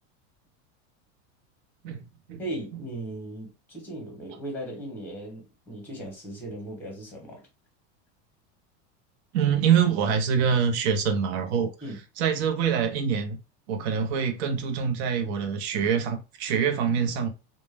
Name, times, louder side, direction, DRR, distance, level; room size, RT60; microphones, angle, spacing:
voice 1, 2.4-7.5 11.8-12.0, right 1 dB, 5° left, 0.9 m, -37 dB
voice 2, 9.3-11.7 12.2-13.4 13.7-17.3, right 7 dB, 70° right, 0.6 m, -25 dB
2.1 x 2.0 x 3.2 m
supercardioid pair, 160°, 34 cm